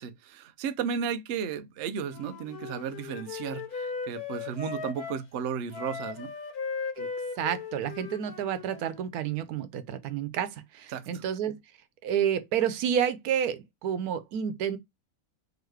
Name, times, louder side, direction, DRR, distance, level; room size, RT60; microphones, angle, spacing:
voice 1, 0.0-6.3 10.9-11.1, right 7 dB, 60° right, 0.7 m, -34 dB
Wind instrument woodwind instrument, 2.1-5.2 5.7-9.0, left 5 dB, 85° left, 1.4 m, -37 dB
voice 2, 7.4-11.6 12.0-14.8, right 9 dB, 90° right, 1.2 m, -30 dB
3.9 x 2.9 x 3.1 m
omnidirectional pair, 1.5 m